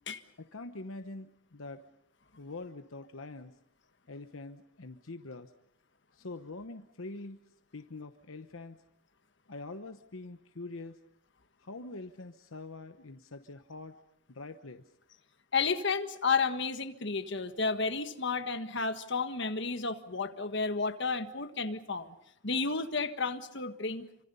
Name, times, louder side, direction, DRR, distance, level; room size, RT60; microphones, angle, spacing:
voice 1, 0.4-1.8 2.4-3.6 4.1-5.5 6.1-7.4 7.7-8.8 9.5-11.0 11.6-14.0 14.3-14.8, left 2 dB, 75° left, 7 dB, 1.0 m, -44 dB
voice 2, 15.5-22.1 22.4-24.1, left 4 dB, 55° left, 8 dB, 1.6 m, -32 dB
28.5 x 25.5 x 5.5 m, 0.79 s
head